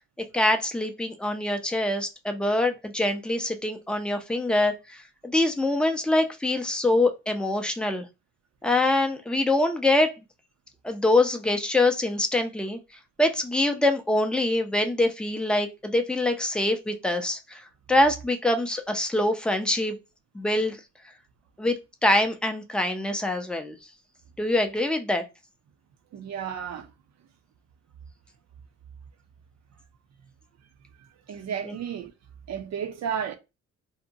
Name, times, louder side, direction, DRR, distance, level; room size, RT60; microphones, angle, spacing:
voice 1, 0.3-8.1 8.6-10.1 10.8-12.8 13.2-20.0 20.3-20.8 21.6-23.8 24.4-25.2 31.7-31.8, left 2 dB, 5° left, 0.5 m, -24 dB
voice 2, 26.1-26.9 31.0-32.1 32.5-33.4, right 8 dB, 60° right, 0.6 m, -33 dB
2.8 x 2.1 x 2.6 m
cardioid pair, 90°, 30 cm